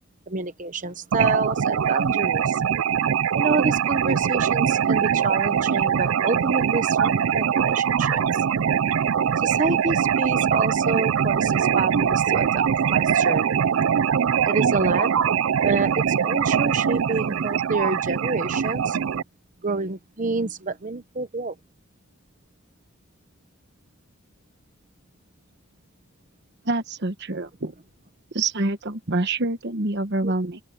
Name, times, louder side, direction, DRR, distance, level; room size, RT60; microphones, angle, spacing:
voice 1, 0.3-2.6 3.3-8.2 9.4-13.5 14.5-15.2 15.6-19.0 19.6-21.5 30.2-30.3, right 3 dB, 40° right, 0.9 m, -28 dB
sound 1, 1.1-19.2, right 7 dB, 75° right, 0.4 m, -22 dB
voice 2, 26.6-27.7 28.3-30.6, right 2 dB, 55° right, 1.2 m, -26 dB
head